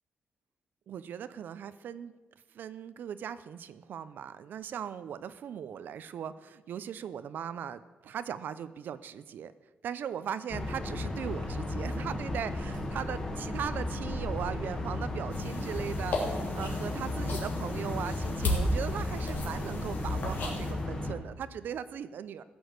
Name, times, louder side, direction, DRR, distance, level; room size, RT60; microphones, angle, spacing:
voice 1, 0.9-2.1 2.5-9.5 9.8-22.4, right 8 dB, 70° right, 13 dB, 0.5 m, -39 dB
sound 1, 10.5-21.1, left 2 dB, 20° left, 1.8 m, -34 dB
sound 2, 15.3-20.7, left 2 dB, 65° left, 3.1 m, -35 dB
15.5 x 6.3 x 8.0 m, 1.2 s
wide cardioid pair, 150°, 3 cm